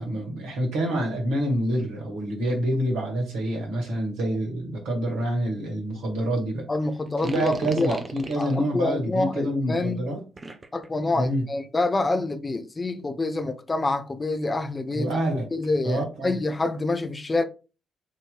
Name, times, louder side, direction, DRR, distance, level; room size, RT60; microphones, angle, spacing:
voice 1, 0.0-6.7 7.2-10.2 11.1-11.4 14.9-15.5 15.8-16.4, right 1 dB, 65° right, 1.6 m, -27 dB
voice 2, 6.7-8.0 8.4-10.0 10.7-15.1 15.5-17.4, left 2 dB, 25° left, 0.7 m, -27 dB
sound 1, 7.1-8.6 10.4-10.9, right 2 dB, 30° right, 0.7 m, -38 dB
7.3 x 3.0 x 2.3 m
figure-of-eight pair, 40°, 0 cm